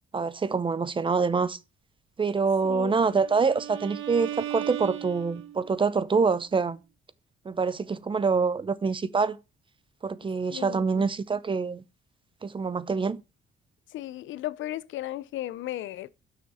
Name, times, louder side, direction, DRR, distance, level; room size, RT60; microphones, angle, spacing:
voice 1, 0.1-1.6 2.2-6.8 7.5-9.4 10.0-11.8 12.4-13.2, right 5 dB, 25° right, 0.5 m, -26 dB
voice 2, 2.6-3.0 10.5-11.1 13.9-16.1, left 14 dB, 75° left, 0.5 m, -35 dB
Bowed string instrument, 2.7-5.8, right 12 dB, 85° right, 0.6 m, -37 dB
6.1 x 5.9 x 4.1 m
cardioid pair, 90°, 20 cm